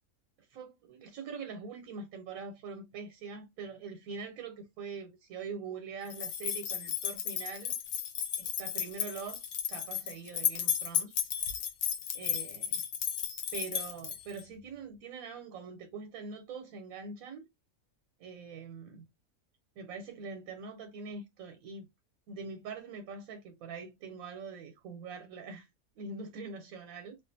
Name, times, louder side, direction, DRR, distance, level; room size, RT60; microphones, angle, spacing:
voice 1, 0.5-7.7 8.4-9.4 9.7-11.1 12.1-12.8 13.5-17.4 18.2-19.1 19.8-21.9 22.3-25.7 26.0-27.2, right 5 dB, 85° right, 1.1 m, -43 dB
sound 1, 6.1-14.4, left 9 dB, 85° left, 1.0 m, -34 dB
2.4 x 2.4 x 2.6 m
omnidirectional pair, 1.4 m